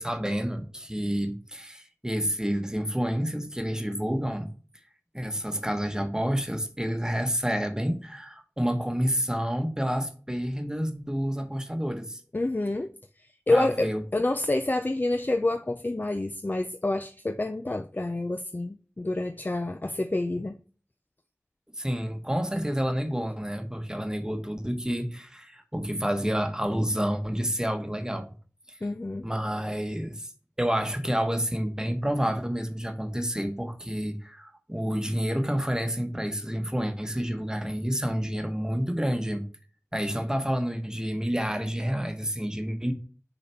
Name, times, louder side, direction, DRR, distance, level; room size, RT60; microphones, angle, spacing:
voice 1, 0.0-4.5 5.1-12.2 13.5-14.0 21.7-28.3 28.7-28.8 29.2-30.3 30.6-39.4 39.9-42.9, equal, 15° right, 1.1 m, -29 dB
voice 2, 12.3-12.9 13.5-20.5 28.8-29.2, left 2 dB, 35° left, 0.4 m, -28 dB
6.6 x 4.0 x 4.3 m
wide cardioid pair, 45°, 5 cm